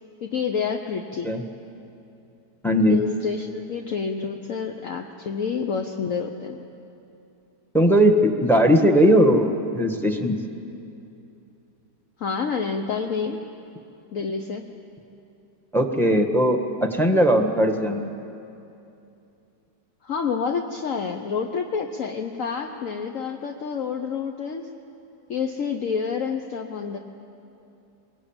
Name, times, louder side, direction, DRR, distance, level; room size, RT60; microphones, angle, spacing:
voice 1, 0.2-1.3 2.9-6.6 12.2-13.4 14.1-14.7 20.0-24.7 25.3-27.0, left 6 dB, 55° left, 4 dB, 1.2 m, -28 dB
voice 2, 2.6-3.0 7.7-10.4 15.7-18.1, equal, ahead, 4 dB, 1.4 m, -19 dB
22.5 x 21.5 x 8.9 m, 2.8 s
omnidirectional pair, 1.7 m